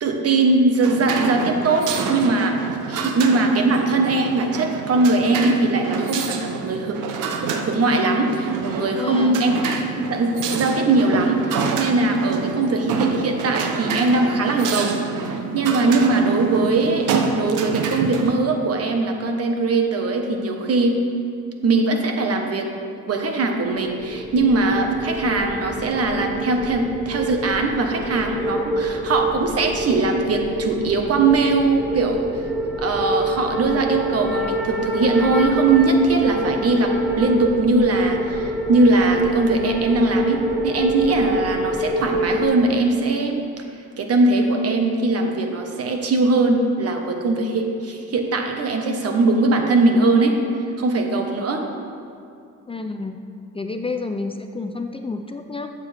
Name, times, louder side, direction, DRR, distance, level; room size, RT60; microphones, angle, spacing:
voice 1, 0.0-2.6 2.9-9.6 10.0-15.0 15.5-17.1 17.3-21.0 21.6-32.2 32.8-43.5 44.0-50.4 50.8-51.7, right 3 dB, 55° right, 3 dB, 1.3 m, -20 dB
sound 1, 0.8-18.3, right 5 dB, 85° right, 1.0 m, -28 dB
voice 2, 8.9-9.4 52.7-53.2 53.5-55.7, left 3 dB, 20° left, 6 dB, 0.5 m, -29 dB
sound 2, 23.8-42.4, equal, 5° right, 1.5 m, -26 dB
14.0 x 7.4 x 3.5 m, 2.5 s
cardioid pair, 90°, 30 cm